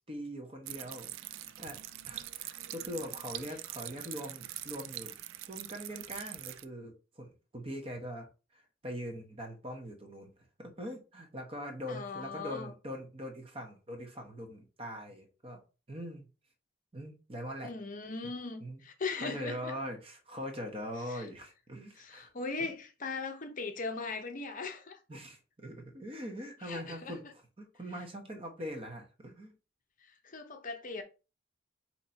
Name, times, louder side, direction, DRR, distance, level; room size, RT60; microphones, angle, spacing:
voice 1, 0.1-1.8 2.1-5.1 5.5-10.3 10.6-15.6 15.9-16.3 16.9-17.7 18.6-18.8 19.2-22.3 22.6-22.7 25.1-27.2 27.6-29.5, equal, 25° right, 0.9 m, -42 dB
sound 1, 0.7-6.6, right 13 dB, 75° right, 0.4 m, -43 dB
voice 2, 11.9-12.7 17.6-19.7 21.1-21.3 22.0-25.2 26.6-27.1 30.0-31.0, left 4 dB, 40° left, 0.7 m, -39 dB
4.1 x 2.9 x 4.3 m
head